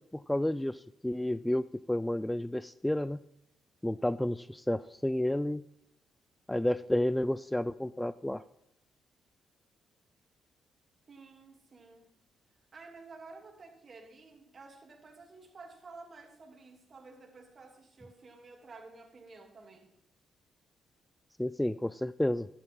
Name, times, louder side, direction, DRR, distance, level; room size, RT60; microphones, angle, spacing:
voice 1, 0.1-3.2 3.8-5.6 6.5-8.4 21.4-22.5, left 1 dB, 10° left, 16 dB, 0.4 m, -31 dB
voice 2, 11.1-12.1 12.7-19.9, right 3 dB, 45° right, 2 dB, 2.9 m, -52 dB
12.5 x 12.0 x 3.7 m, 0.80 s
hypercardioid pair, 45°, 0 cm